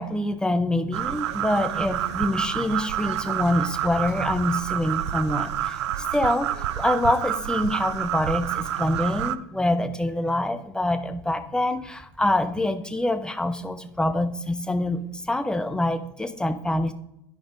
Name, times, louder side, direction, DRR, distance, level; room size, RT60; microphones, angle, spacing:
voice 1, 0.0-16.9, left 1 dB, 5° left, 8 dB, 0.8 m, -25 dB
sound 1, 0.9-9.4, right 11 dB, 75° right, 0.5 m, -28 dB
11.5 x 5.1 x 3.6 m, 0.84 s
hypercardioid pair, 85°, 15 cm